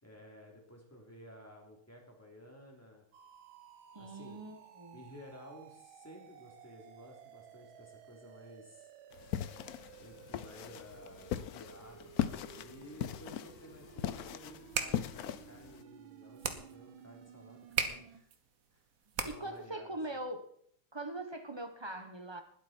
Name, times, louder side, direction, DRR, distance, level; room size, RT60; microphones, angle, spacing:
voice 1, 0.0-3.0 4.0-4.4 4.9-8.9 10.0-18.3 18.7-18.8 19.2-20.0, equal, 5° left, -1 dB, 3.4 m, -54 dB
sound 1, 3.1-18.2, right 8 dB, 70° right, 1.6 m, -56 dB
voice 2, 3.9-5.0 19.2-20.4 20.9-22.4, right 1 dB, 20° right, 6 dB, 0.6 m, -42 dB
sound 2, 9.1-15.8, left 10 dB, 85° left, 0.8 m, -39 dB
sound 3, 14.5-19.7, right 6 dB, 50° right, 1.2 m, -39 dB
20.0 x 8.2 x 4.5 m, 0.65 s
omnidirectional pair, 2.4 m